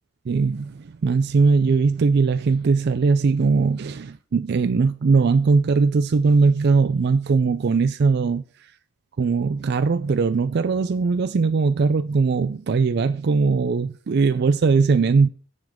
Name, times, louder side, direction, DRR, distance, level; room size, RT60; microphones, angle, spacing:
voice 1, 0.3-8.7 9.2-15.3, right 4 dB, 50° right, 0.4 m, -20 dB
7.6 x 7.2 x 3.6 m
head